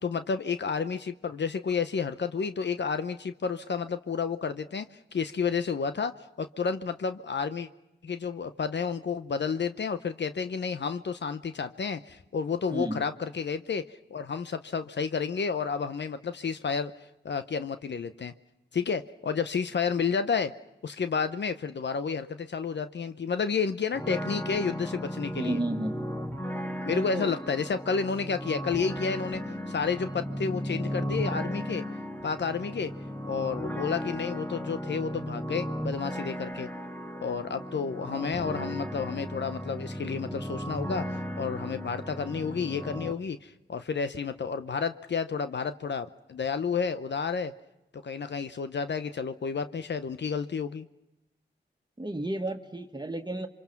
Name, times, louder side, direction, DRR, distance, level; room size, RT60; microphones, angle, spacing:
voice 1, 0.0-7.7 8.0-16.9 17.2-18.3 18.7-20.5 20.8-25.6 26.8-29.4 29.7-31.8 32.2-32.9 33.2-36.7 37.2-47.5 48.0-50.9, left 5 dB, 65° left, 10 dB, 0.8 m, -31 dB
voice 2, 12.7-13.0 25.3-26.1 26.9-27.3 52.0-53.5, right 1 dB, 25° right, 4 dB, 1.8 m, -32 dB
sound 1, 23.9-43.1, equal, 10° left, 1.7 m, -35 dB
28.0 x 24.5 x 5.9 m, 0.94 s
cardioid pair, 45°, 19 cm